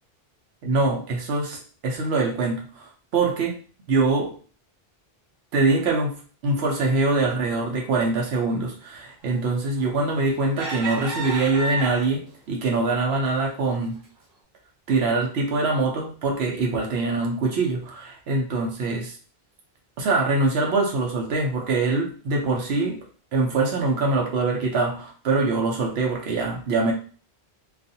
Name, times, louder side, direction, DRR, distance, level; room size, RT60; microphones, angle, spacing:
voice 1, 0.6-3.6 3.9-4.3 5.5-6.2 6.4-14.0 14.9-19.2 20.0-23.0 23.3-26.9, right 3 dB, 90° right, 0 dB, 0.9 m, -24 dB
sound 1, 9.8-10.1 10.6-12.3 12.9-13.1 13.5-13.7, right 2 dB, 60° right, 0.9 m, -30 dB
2.4 x 2.4 x 2.6 m, 0.40 s
omnidirectional pair, 1.0 m